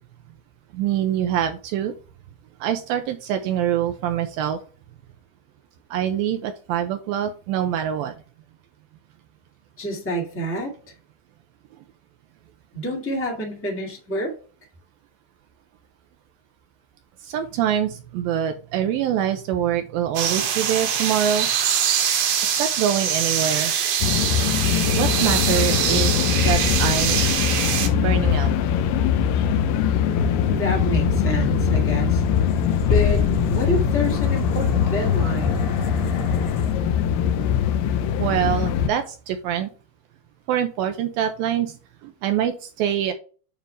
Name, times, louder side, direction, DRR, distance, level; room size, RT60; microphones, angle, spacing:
voice 1, 0.7-1.9 2.6-4.6 5.9-8.1 17.2-21.5 22.4-23.7 25.0-27.3 27.8-28.5 38.2-39.7 40.5-41.7 42.0-43.1, right 10 dB, 80° right, 7 dB, 2.2 m, -25 dB
voice 2, 9.8-10.7 12.7-14.3 30.5-32.2 32.8-35.6, equal, 10° left, 0 dB, 0.8 m, -28 dB
sound 1, 20.2-27.9, right 8 dB, 65° right, 2.2 m, -23 dB
sound 2, 24.0-38.9, left 8 dB, 85° left, 2.8 m, -22 dB
sound 3, 30.2-38.3, left 2 dB, 55° left, 2.2 m, -29 dB
9.1 x 3.4 x 4.5 m, 0.38 s
omnidirectional pair, 4.5 m